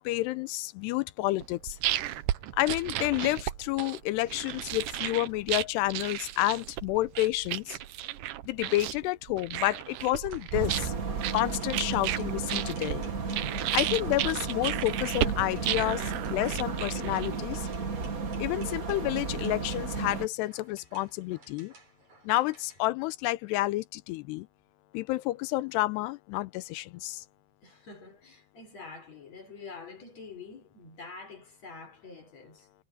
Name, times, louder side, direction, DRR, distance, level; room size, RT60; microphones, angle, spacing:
voice 1, 0.0-1.8 2.5-7.8 8.4-10.9 11.3-13.0 13.7-17.7 18.4-21.7 22.2-24.5 24.9-27.3, left 18 dB, 85° left, 2.8 m, -30 dB
sound 1, 1.4-17.5, right 13 dB, 80° right, 1.8 m, -34 dB
sound 2, 10.2-22.9, right 3 dB, 40° right, 8.5 m, -56 dB
sound 3, 10.5-20.3, right 4 dB, 65° right, 0.8 m, -34 dB
voice 2, 27.6-32.7, left 4 dB, 40° left, 6.5 m, -46 dB
omnidirectional pair, 4.9 m